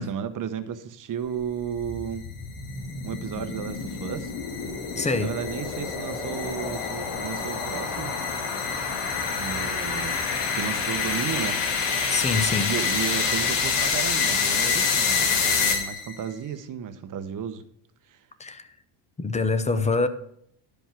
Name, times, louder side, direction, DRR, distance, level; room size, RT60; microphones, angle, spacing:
voice 1, 0.0-2.2 3.0-4.3 5.2-8.2 9.3-10.2 10.5-11.6 12.7-17.6 18.1-18.2, right 8 dB, 40° right, 10 dB, 1.0 m, -33 dB
sound 1, 1.4-16.2, left 5 dB, 65° left, 2.2 m, -27 dB
voice 2, 5.0-5.3 12.1-12.7 18.4-18.6 19.2-20.1, left 3 dB, 15° left, 11 dB, 0.7 m, -25 dB
11.5 x 5.3 x 5.9 m, 0.69 s
cardioid pair, 135°, 48 cm